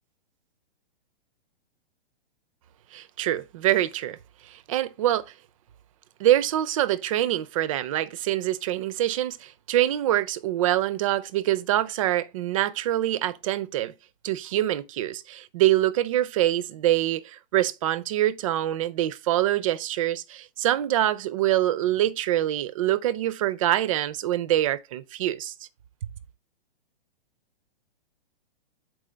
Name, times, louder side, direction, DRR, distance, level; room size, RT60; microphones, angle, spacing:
voice 1, 2.9-4.2 4.5-5.3 6.2-13.9 14.2-25.5, right 13 dB, 35° right, 0.4 m, -25 dB
7.5 x 4.4 x 3.3 m
hypercardioid pair, 145°, 29 cm